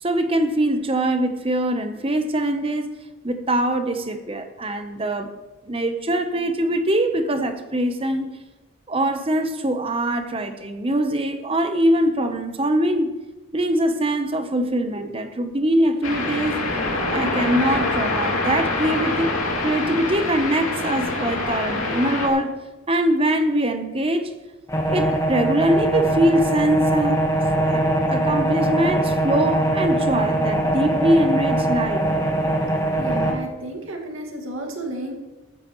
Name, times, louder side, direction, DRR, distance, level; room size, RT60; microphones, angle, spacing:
voice 1, 0.0-2.9 3.2-5.3 5.6-8.3 8.9-13.1 13.5-16.6 17.1-19.3 19.6-22.6 22.9-24.3 24.9-27.3 27.6-32.0, right 1 dB, 25° right, 7 dB, 0.9 m, -22 dB
sound 1, 16.0-22.3, left 2 dB, 80° left, 2.5 m, -25 dB
sound 2, 24.7-33.3, right 1 dB, 15° left, 1.4 m, -22 dB
voice 2, 33.0-35.2, right 1 dB, 75° right, 2 dB, 2.2 m, -32 dB
14.0 x 13.5 x 3.1 m, 1.1 s
head